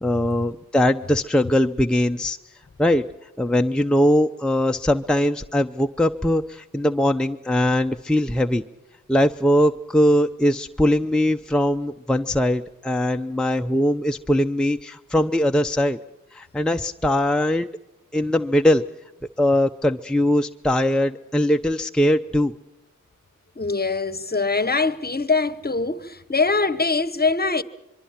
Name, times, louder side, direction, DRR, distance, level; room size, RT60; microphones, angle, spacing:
voice 1, 0.0-2.4 2.8-3.0 3.4-8.6 9.1-16.0 16.3-17.7 18.1-18.8 19.4-22.5, left 1 dB, ahead, 0.7 m, -21 dB
voice 2, 23.6-27.6, left 3 dB, 30° left, 1.2 m, -23 dB
24.5 x 23.5 x 5.9 m
cardioid pair, 60°, 32 cm